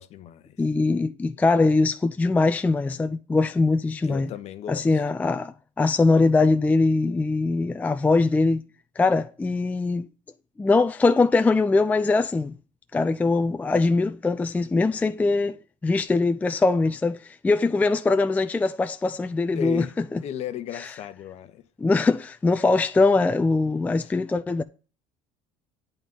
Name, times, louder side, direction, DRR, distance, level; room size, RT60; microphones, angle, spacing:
voice 1, 0.0-0.6 4.0-5.0 19.5-19.9 20.2-21.6 24.0-24.2, left 11 dB, 50° left, 1.0 m, -35 dB
voice 2, 0.6-4.3 4.7-8.6 9.0-10.1 10.6-12.6 12.9-15.6 15.8-20.2 20.7-20.9 21.8-24.6, left 3 dB, 10° left, 0.4 m, -22 dB
9.2 x 4.0 x 7.1 m
cardioid pair, 130°, 14 cm